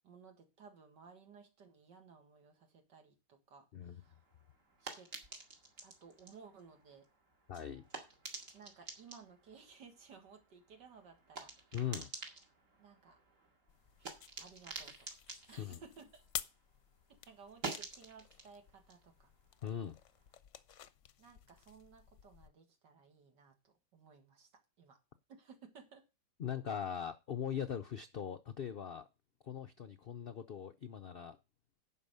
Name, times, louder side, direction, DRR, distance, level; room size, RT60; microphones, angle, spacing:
voice 1, 0.0-4.2 4.8-5.1 5.8-7.1 8.5-11.7 12.8-13.2 14.4-15.1 15.5-16.2 17.2-19.3 21.2-24.5 24.8-25.0 25.3-26.1, right 5 dB, 80° right, 2.4 m, -58 dB
sound 1, 4.0-16.8 17.1-20.3, right 3 dB, 50° right, 2.5 m, -50 dB
voice 2, 7.5-7.8 11.7-12.1 15.6-15.8 19.6-20.0 26.4-29.1 29.4-31.4, left 8 dB, 85° left, 0.5 m, -40 dB
sound 2, 13.7-22.5, left 9 dB, 60° left, 0.8 m, -51 dB
11.0 x 5.0 x 6.7 m
omnidirectional pair, 1.8 m